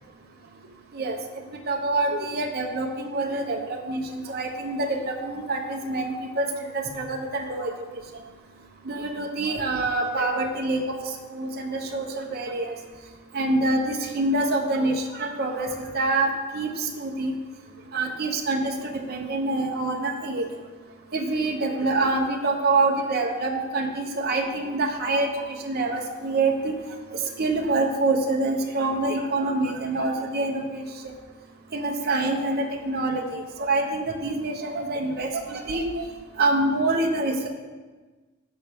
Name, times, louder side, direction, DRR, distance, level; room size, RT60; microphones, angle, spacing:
voice 1, 0.9-6.5 6.7-7.7 8.8-11.0 11.3-12.7 13.3-17.3 17.9-20.4 21.1-26.7 27.1-31.1 31.7-36.0 36.4-37.5, right 2 dB, 50° right, 1 dB, 1.0 m, -26 dB
15.0 x 5.7 x 3.6 m, 1.3 s
head